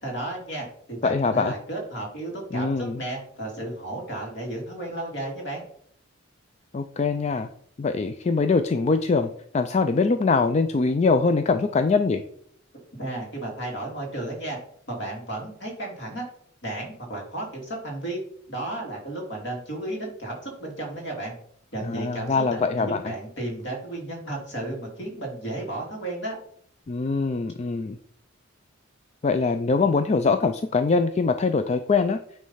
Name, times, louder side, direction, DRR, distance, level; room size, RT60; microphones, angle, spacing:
voice 1, 0.0-5.6 13.0-14.6 14.9-16.3 16.6-18.2 18.5-21.3 21.7-26.4, right 1 dB, 60° left, 0 dB, 2.7 m, -33 dB
voice 2, 1.0-1.5 2.5-3.0 6.7-7.5 7.8-12.2 21.8-23.1 26.9-28.0 29.2-32.2, left 4 dB, 35° left, 9 dB, 0.3 m, -23 dB
9.3 x 3.3 x 5.6 m, 0.65 s
head